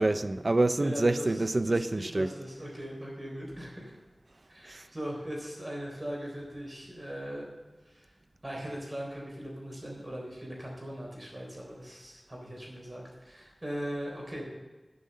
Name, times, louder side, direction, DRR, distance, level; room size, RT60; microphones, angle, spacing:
voice 1, 0.0-2.3 4.7-4.9, right 2 dB, 50° right, 0.5 m, -27 dB
voice 2, 0.8-1.3 1.6-4.0 4.5-7.5 7.9-8.1 8.4-14.4, equal, 30° right, 3.8 m, -39 dB
10.0 x 7.8 x 6.6 m
wide cardioid pair, 70°, 0 cm